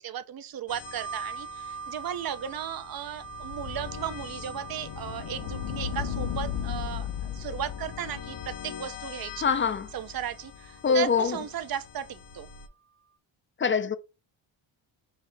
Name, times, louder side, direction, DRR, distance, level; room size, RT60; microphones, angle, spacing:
voice 1, 0.0-9.4 9.9-12.5, right 9 dB, 45° right, 0.6 m, -36 dB
sound 1, 0.7-12.7, left 8 dB, 55° left, 0.9 m, -45 dB
sound 2, 0.8-9.3 10.2-11.1, right 6 dB, 75° right, 1.2 m, -44 dB
sound 3, 3.3-10.2, left 9 dB, 90° left, 0.9 m, -36 dB
voice 2, 9.4-9.9 10.8-11.4 13.6-14.0, left 5 dB, 25° left, 0.4 m, -24 dB
5.4 x 2.7 x 3.4 m
cardioid pair, 110°, 49 cm